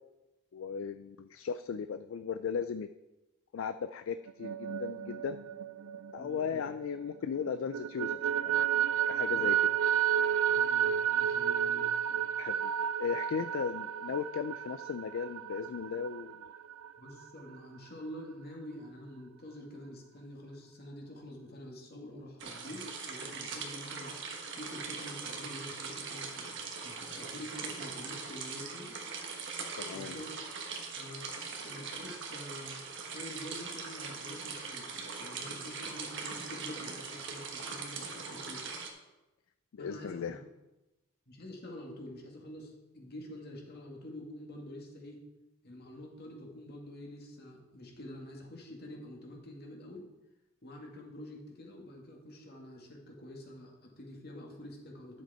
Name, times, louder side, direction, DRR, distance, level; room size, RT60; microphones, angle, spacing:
voice 1, 0.5-2.9 3.5-5.4 6.1-8.7 9.1-9.7 12.4-12.7 13.0-16.5 29.8-30.2 39.7-40.4, left 6 dB, 65° left, 11 dB, 0.4 m, -36 dB
sound 1, 4.3-7.1 7.5-16.9, right 9 dB, 80° right, 0.4 m, -31 dB
voice 2, 6.2-6.6 9.3-9.5 10.5-12.3 17.0-24.2 24.5-26.5 26.8-28.9 29.9-30.4 30.9-31.3 31.6-32.8 33.1-34.9 35.1-38.7 39.8-40.4 41.3-45.2 45.6-50.1 50.6-55.2, left 1 dB, 50° left, 0 dB, 2.1 m, -47 dB
sound 2, 22.4-38.9, right 4 dB, 60° right, 1.4 m, -41 dB
10.5 x 7.3 x 4.3 m, 1.0 s
head